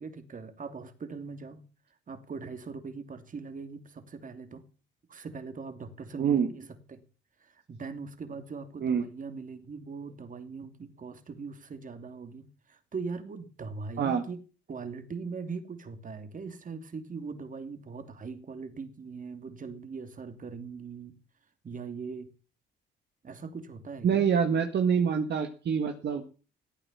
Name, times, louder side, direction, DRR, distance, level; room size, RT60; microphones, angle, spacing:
voice 1, 0.0-1.6 2.1-4.6 5.1-7.0 7.4-14.4 14.7-21.1 21.6-22.3 23.2-24.3, right 4 dB, 40° right, 9 dB, 2.9 m, -41 dB
voice 2, 6.2-6.5 8.8-9.0 14.0-14.2 24.0-26.2, right 7 dB, 60° right, 6 dB, 1.9 m, -26 dB
16.0 x 9.2 x 7.5 m, 0.37 s
cardioid pair, 90°, 20 cm